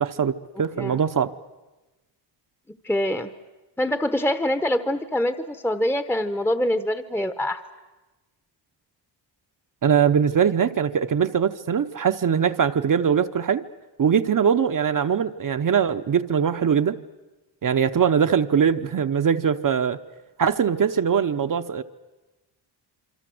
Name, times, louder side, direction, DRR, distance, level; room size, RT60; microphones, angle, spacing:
voice 1, 0.0-1.3 9.8-13.6 14.0-16.9 17.6-20.0 20.4-21.8, right 7 dB, 45° right, 8 dB, 0.9 m, -21 dB
voice 2, 2.8-3.3 3.8-7.6, left 1 dB, 5° left, 10 dB, 1.0 m, -24 dB
27.0 x 24.5 x 7.8 m, 1.1 s
cardioid pair, 105°, 44 cm